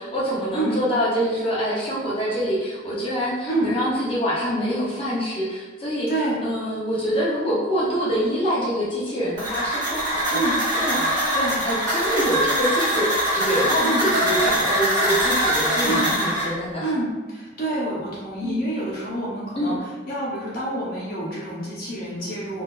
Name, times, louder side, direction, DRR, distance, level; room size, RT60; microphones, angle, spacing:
voice 1, 0.0-6.1 6.4-10.4 10.7-11.4 11.6-16.9 18.4-18.7 19.6-19.8, equal, 30° left, -6 dB, 0.7 m, -25 dB
voice 2, 6.1-6.4 10.3-10.6 11.3-11.6 13.8-14.1 15.8-16.1 16.8-22.6, right 1 dB, 50° left, -8 dB, 1.0 m, -27 dB
sound 1, 9.4-16.5, equal, 20° right, 1.2 m, -23 dB
4.0 x 2.7 x 2.4 m, 1.3 s
head